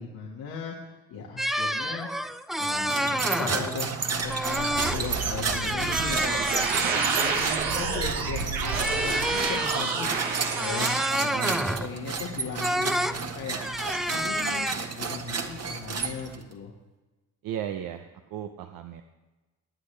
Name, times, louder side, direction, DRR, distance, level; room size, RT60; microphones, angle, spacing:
voice 1, 0.0-2.1 2.6-6.5 6.8-10.2 10.4-10.9 11.2-11.4 11.8-13.6 14.1-16.7, left 5 dB, 80° left, -4 dB, 1.9 m, -37 dB
sound 1, 1.4-3.8 4.3-5.0 5.3-7.6 8.6-11.9 12.6-13.2 13.5-14.7, equal, ahead, 0.5 m, -29 dB
sound 2, 2.6-16.5, right 5 dB, 45° right, 1.4 m, -32 dB
sound 3, 3.6-11.1, right 5 dB, 90° right, 1.2 m, -30 dB
voice 2, 11.3-12.0 17.4-19.0, right 10 dB, 70° right, 6 dB, 0.9 m, -36 dB
20.0 x 8.8 x 3.3 m, 1.1 s
supercardioid pair, 65°, 36 cm